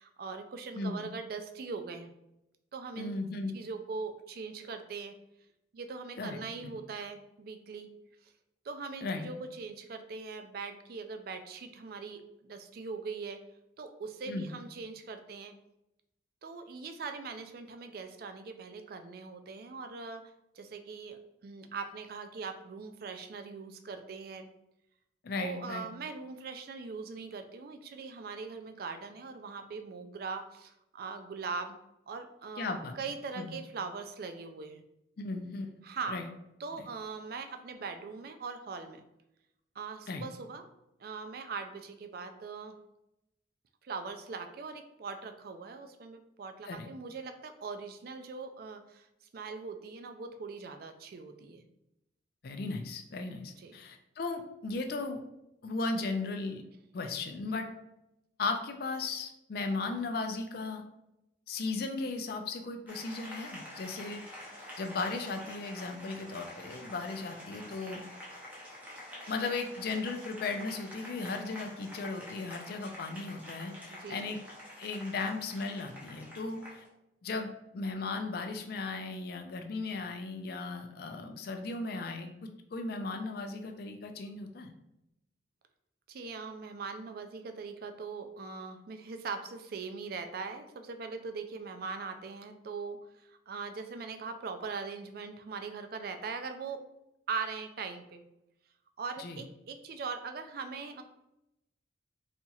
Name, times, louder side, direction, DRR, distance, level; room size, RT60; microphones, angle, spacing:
voice 1, 0.0-2.1 2.7-3.1 3.5-5.1 5.7-7.9 8.2-8.3 8.6-13.4 13.8-15.5 16.4-20.2 20.5-24.5 25.4-31.8 32.1-32.7 32.9-34.8 35.8-36.2 36.6-39.0 39.8-40.6 41.0-42.8 43.8-49.1 49.3-51.6 53.6-53.8 69.2-69.3 73.9-74.2 86.1-96.8 97.3-98.2 99.0-101.0, right 4 dB, 50° right, 7 dB, 0.3 m, -41 dB
voice 2, 3.0-3.6 6.2-6.8 9.0-9.3 14.3-14.5 25.2-25.9 32.6-32.9 33.4-33.6 35.2-35.8 36.1-36.3 36.8-36.9 40.1-40.2 46.6-46.9 52.4-55.2 55.6-56.6 56.9-57.7 58.4-60.8 61.5-64.2 64.8-68.0 69.3-74.4 74.8-76.8 77.2-84.7 99.2-99.4, left 3 dB, 50° left, 6 dB, 0.4 m, -36 dB
Applause, 62.9-76.9, left 1 dB, 10° right, 0.7 m, -47 dB
4.1 x 2.8 x 2.3 m, 0.86 s
head